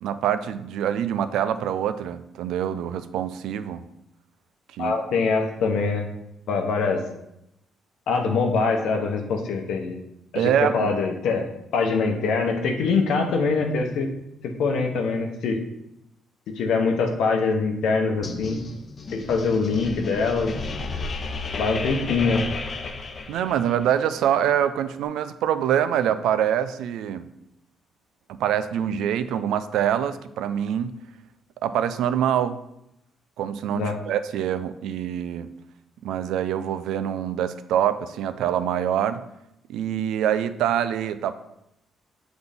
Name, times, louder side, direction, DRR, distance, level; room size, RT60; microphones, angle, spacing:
voice 1, 0.0-3.8 4.7-5.2 10.3-10.9 23.3-27.3 28.3-30.9 31.6-32.6 33.4-35.5 36.0-39.2 39.7-41.3, right 9 dB, 85° right, 12 dB, 0.4 m, -25 dB
voice 2, 4.8-6.1 6.5-7.0 8.1-10.0 10.3-11.5 11.7-14.1 14.4-15.6 16.6-18.6 19.1-20.5 21.6-22.4 33.7-33.9, left 4 dB, 80° left, 3 dB, 1.0 m, -23 dB
sound 1, 18.2-23.9, left 3 dB, 45° left, 0.7 m, -32 dB
7.7 x 4.0 x 3.5 m, 0.82 s
cardioid pair, 90°, 0 cm